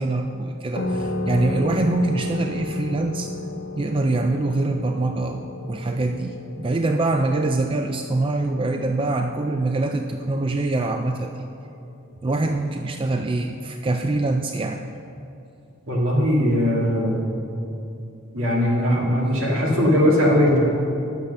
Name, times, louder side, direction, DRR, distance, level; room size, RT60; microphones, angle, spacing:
voice 1, 0.0-3.3 3.7-11.5 12.2-14.8, right 2 dB, 25° right, 5 dB, 0.4 m, -24 dB
sound 1, 0.8-10.0, left 2 dB, 55° left, 0.8 m, -32 dB
voice 2, 15.9-17.3 18.3-20.7, equal, 75° right, -3 dB, 2.3 m, -19 dB
10.0 x 7.0 x 6.4 m, 2.7 s
head